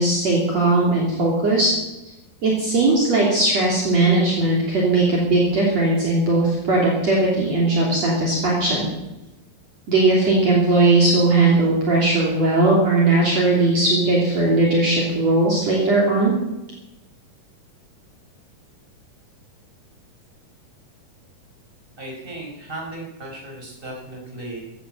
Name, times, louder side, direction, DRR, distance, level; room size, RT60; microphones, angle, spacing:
voice 1, 0.0-1.7 2.4-8.9 9.9-16.3, right 2 dB, 45° right, -3 dB, 3.9 m, -18 dB
voice 2, 22.0-24.6, right 1 dB, 15° right, -1 dB, 5.1 m, -35 dB
15.5 x 12.0 x 7.7 m, 0.96 s
omnidirectional pair, 4.4 m